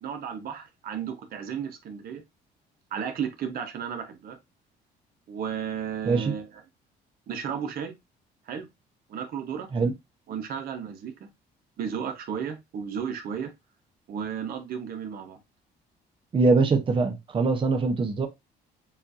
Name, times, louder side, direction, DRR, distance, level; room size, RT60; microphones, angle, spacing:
voice 1, 0.0-2.2 2.9-4.4 5.3-6.6 7.3-7.9 8.5-8.7 9.1-9.7 10.3-11.3 11.8-13.5 14.1-15.4, right 7 dB, 60° right, 1.1 m, -33 dB
voice 2, 16.3-18.3, right 3 dB, 30° right, 0.9 m, -23 dB
7.1 x 2.6 x 2.6 m
cardioid pair, 110°, 17 cm